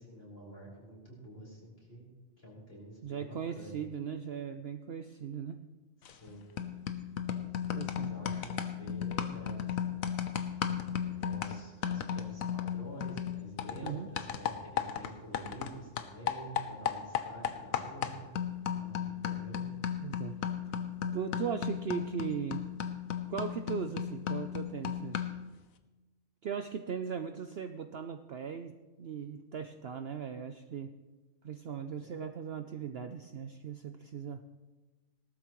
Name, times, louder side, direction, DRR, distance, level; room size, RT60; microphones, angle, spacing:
voice 1, 0.0-2.1 2.4-3.8 6.0-6.5 7.7-10.0 10.9-18.3 18.7-19.6, right 1 dB, 45° left, -5 dB, 5.0 m, -48 dB
voice 2, 3.0-5.6 7.7-8.1 13.8-14.1 20.0-20.4 21.1-22.6 23.3-25.2 26.4-30.9 31.4-34.5, right 7 dB, 60° right, 7 dB, 0.7 m, -38 dB
sound 1, 6.1-6.3 6.6-15.7 16.0-25.5, left 8 dB, 80° left, 1.2 m, -35 dB
18.5 x 13.0 x 3.1 m, 1.2 s
omnidirectional pair, 1.4 m